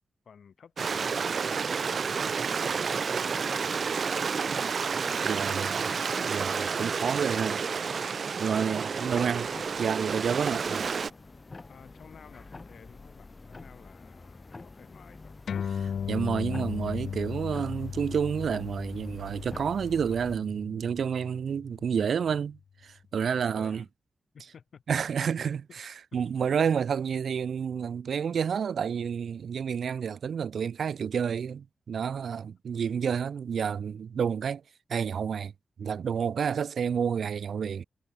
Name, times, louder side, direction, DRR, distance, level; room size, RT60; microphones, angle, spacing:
voice 1, 0.2-4.5 7.0-7.1 9.0-9.3 11.7-15.4 23.3-23.9 24.3-25.0 25.7-25.8 32.8-33.0, left 7 dB, 70° left, 6.1 m, -53 dB
Stream, 0.8-11.1, right 5 dB, 55° right, 0.3 m, -30 dB
voice 2, 5.2-5.8 6.2-7.6 8.4-9.4 9.8-10.9 15.8-23.8 24.9-34.6 34.9-35.5 35.8-37.8, right 7 dB, 80° right, 0.8 m, -30 dB
sound 1, 9.0-20.4, left 3 dB, 25° left, 3.1 m, -46 dB
sound 2, 15.5-22.3, left 7 dB, 90° left, 1.3 m, -37 dB
wide cardioid pair, 160°, 0 cm